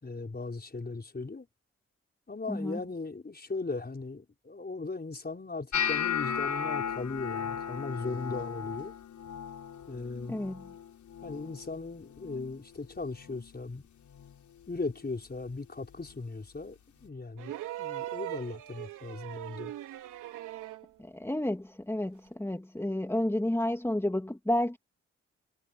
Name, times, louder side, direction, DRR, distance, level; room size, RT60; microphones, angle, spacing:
voice 1, 0.0-1.5 2.3-8.9 9.9-10.4 11.2-13.8 14.7-17.5 17.8-19.7, left 3 dB, 30° left, 5.1 m, -38 dB
voice 2, 2.5-2.8 10.3-10.7 21.0-24.8, left 1 dB, 10° left, 2.7 m, -31 dB
sound 1, 5.7-11.8 12.1-12.6 13.0-13.5 14.1-14.3 16.1-16.2, left 8 dB, 70° left, 5.1 m, -35 dB
sound 2, 17.4-20.9 22.3-22.4, right 14 dB, 80° right, 3.8 m, -40 dB
hypercardioid pair, 45°, 30 cm